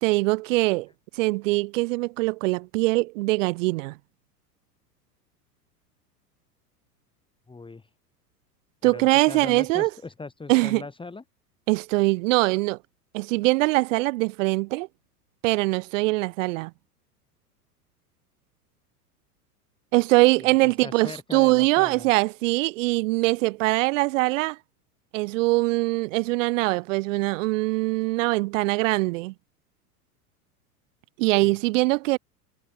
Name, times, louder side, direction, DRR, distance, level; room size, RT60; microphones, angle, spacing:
voice 1, 0.0-0.9 1.2-3.9 8.8-9.9 10.5-10.8 11.7-12.8 13.1-14.9 15.4-16.7 19.9-24.6 25.1-29.3 31.2-32.2, right 22 dB, 50° right, 1.1 m, -22 dB
voice 2, 7.5-7.9 8.8-11.2 20.4-22.1 31.4-31.6, left 3 dB, 10° left, 2.8 m, -40 dB
figure-of-eight pair, 95°, 47 cm